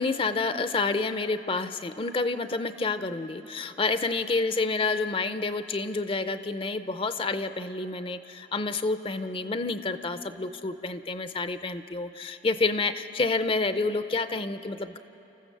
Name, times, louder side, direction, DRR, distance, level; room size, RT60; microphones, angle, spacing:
voice 1, 0.0-15.0, left 3 dB, 30° left, 11 dB, 0.6 m, -29 dB
30.0 x 14.5 x 6.7 m, 2.9 s
head